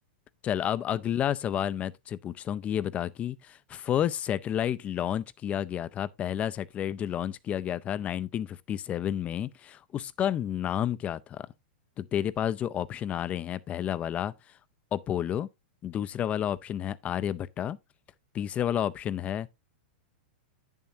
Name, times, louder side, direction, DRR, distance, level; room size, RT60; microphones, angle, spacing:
voice 1, 0.4-11.5 12.0-14.3 14.9-15.5 15.8-17.8 18.3-19.5, left 10 dB, 25° left, 0.4 m, -30 dB
8.6 x 7.2 x 2.7 m
hypercardioid pair, 130°, 5 cm